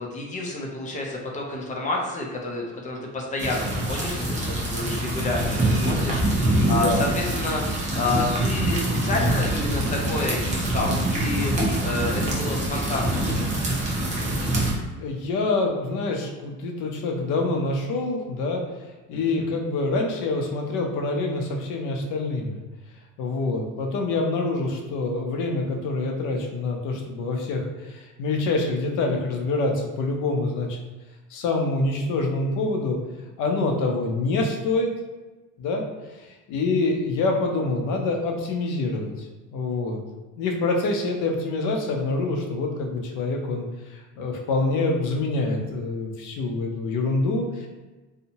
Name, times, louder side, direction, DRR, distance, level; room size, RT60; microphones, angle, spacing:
voice 1, 0.0-13.5 19.1-19.5, left 2 dB, 25° left, -1 dB, 0.4 m, -30 dB
sound 1, 3.4-14.7, right 1 dB, 25° right, 0.5 m, -25 dB
voice 2, 6.6-7.1 15.0-18.6 19.1-22.6 23.2-30.8 31.3-33.0 33.4-34.9 35.6-35.8 36.2-39.1 39.5-40.0 40.4-47.7, left 3 dB, 75° left, 2 dB, 0.6 m, -26 dB
2.7 x 2.1 x 2.8 m, 1.2 s
cardioid pair, 145°, 31 cm